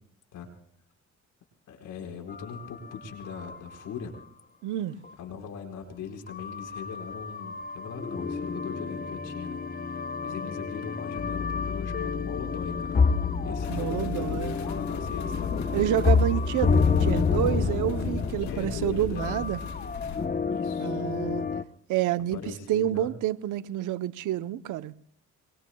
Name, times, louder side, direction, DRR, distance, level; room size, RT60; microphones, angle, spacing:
voice 1, 1.7-4.1 5.2-13.0 13.4-15.5 18.4-19.9 20.5-21.0 22.3-23.1, left 6 dB, 85° left, 4.9 m, -40 dB
sound 1, 2.3-3.9 4.1-4.2 5.0-5.1 6.3-21.6, left 5 dB, 30° left, 0.9 m, -29 dB
voice 2, 4.6-5.0 13.7-14.6 15.7-19.6 20.8-21.5 21.9-24.9, right 12 dB, 85° right, 0.8 m, -29 dB
sound 2, 13.5-20.3, left 6 dB, 65° left, 2.2 m, -40 dB
24.5 x 24.5 x 2.3 m
cardioid pair, 90°, 30 cm